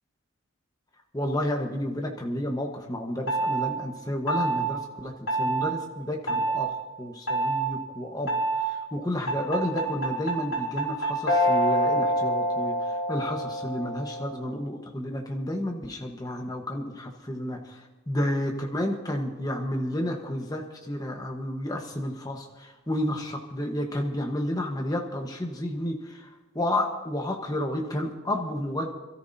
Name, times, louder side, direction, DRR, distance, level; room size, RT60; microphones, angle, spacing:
voice 1, 1.1-5.1 5.4-6.7 7.0-12.8 13.1-17.8 18.1-26.3 26.5-28.9, left 1 dB, 20° left, 2 dB, 1.2 m, -31 dB
sound 1, 3.3-3.6 4.3-4.6 5.3-5.6 6.3-6.6 7.3-7.6 8.3-8.6 9.3-14.4, right 1 dB, 80° left, 4.7 m, -26 dB
27.0 x 13.0 x 2.8 m, 1.2 s
head